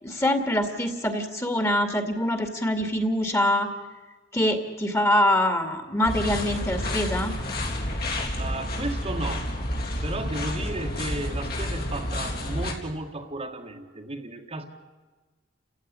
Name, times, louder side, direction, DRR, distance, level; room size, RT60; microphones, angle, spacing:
voice 1, 0.0-3.7 4.3-7.4, left 1 dB, 15° left, 6 dB, 2.4 m, -24 dB
sound 1, 6.0-12.7, left 1 dB, 55° left, 4.0 m, -30 dB
voice 2, 8.4-9.5 10.0-14.6, right 2 dB, 35° right, 2 dB, 1.7 m, -34 dB
29.5 x 16.0 x 9.8 m, 1.3 s
head